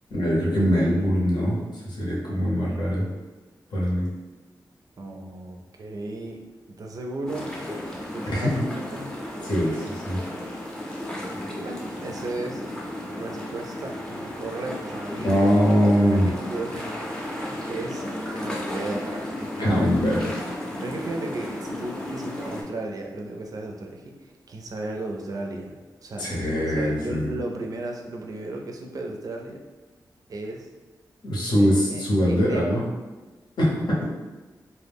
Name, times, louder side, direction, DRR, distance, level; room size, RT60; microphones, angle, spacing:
voice 1, 0.1-3.1 3.7-4.1 8.3-8.5 9.4-10.2 15.2-16.3 19.6-20.2 26.2-27.4 31.2-32.8 33.6-34.0, equal, 80° left, -5 dB, 0.8 m, -22 dB
voice 2, 5.0-6.4 6.7-7.6 8.1-9.1 11.6-12.6 13.2-15.5 16.1-18.0 18.4-19.9 20.8-29.6 30.3-30.7 31.4-32.8, right 2 dB, 55° right, 1 dB, 0.4 m, -35 dB
sound 1, 7.3-22.6, left 1 dB, 10° left, 0.5 m, -34 dB
2.1 x 2.0 x 3.4 m, 1.2 s
wide cardioid pair, 95°, 7 cm